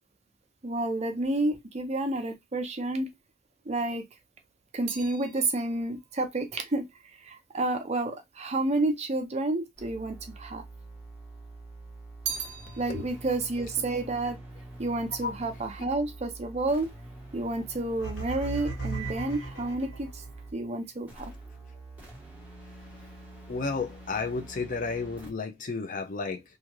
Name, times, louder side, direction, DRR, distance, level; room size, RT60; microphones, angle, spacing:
voice 1, 0.6-3.1 3.7-4.0 4.7-6.9 7.2-10.6 12.8-14.4 14.8-16.9 17.3-20.2 20.5-21.3, right 2 dB, 35° right, 0.6 m, -30 dB
sound 1, 3.9-8.3 9.1-9.9 10.2-11.3 11.7-15.2 15.5-16.0, right 7 dB, 60° right, 0.8 m, -43 dB
sound 2, 9.8-20.6 21.1-25.3, right 2 dB, 10° right, 0.8 m, -46 dB
sound 3, 18.0-20.4, right 3 dB, 75° left, 1.7 m, -36 dB
voice 2, 23.5-26.4, left 4 dB, 45° left, 0.5 m, -32 dB
2.6 x 2.5 x 2.9 m
head